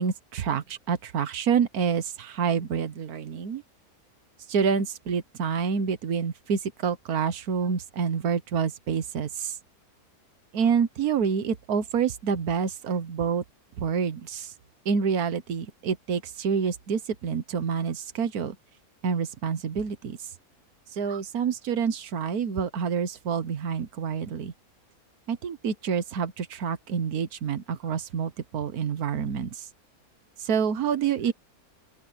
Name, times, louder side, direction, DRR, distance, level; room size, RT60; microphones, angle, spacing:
voice 1, 0.0-3.6 4.5-9.5 10.5-13.4 13.8-14.5 14.8-18.5 19.0-20.2 20.9-24.5 25.3-29.7 30.4-31.3, right 6 dB, 75° right, 1.7 m, -27 dB
open air
omnidirectional pair, 1.6 m